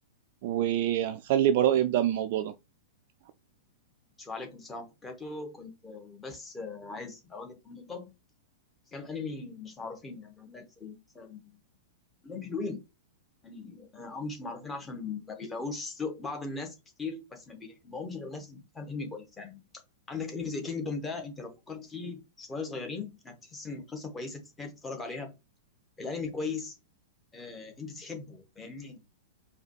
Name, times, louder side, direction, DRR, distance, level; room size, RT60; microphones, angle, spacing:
voice 1, 0.4-2.5, right 11 dB, 45° right, 0.3 m, -25 dB
voice 2, 4.2-8.1 8.9-11.4 12.2-12.8 13.4-19.6 20.1-25.3 26.0-26.8 27.3-29.0, left 4 dB, 15° left, 1.1 m, -38 dB
4.7 x 2.3 x 2.8 m
figure-of-eight pair, 100°, 0 cm